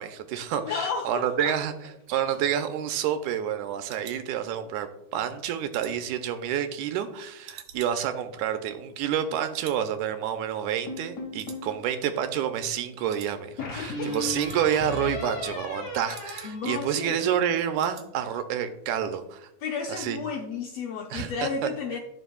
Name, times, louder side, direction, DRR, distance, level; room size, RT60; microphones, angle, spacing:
voice 1, 0.0-1.7 2.1-19.5 19.9-20.2 21.1-21.7, right 9 dB, 85° right, 8 dB, 2.1 m, -29 dB
voice 2, 0.5-1.6 13.6-14.2 16.4-17.2 19.6-22.0, left 5 dB, 80° left, 2 dB, 1.4 m, -32 dB
sound 1, 2.2-4.9 5.3-7.1 7.4-9.3 9.5-9.9 10.1-10.2 10.7-11.1 11.4-12.1 12.4-12.7 13.1-13.3 13.6-13.7 13.9-14.9 15.2-16.8 17.1-17.2 17.5-18.1 18.4-18.7 19.0-19.1, right 8 dB, 70° right, 1.5 m, -49 dB
sound 2, 10.9-11.8 13.6-17.4, left 2 dB, 40° left, 2.4 m, -36 dB
13.5 x 4.9 x 2.3 m, 0.83 s
omnidirectional pair, 3.5 m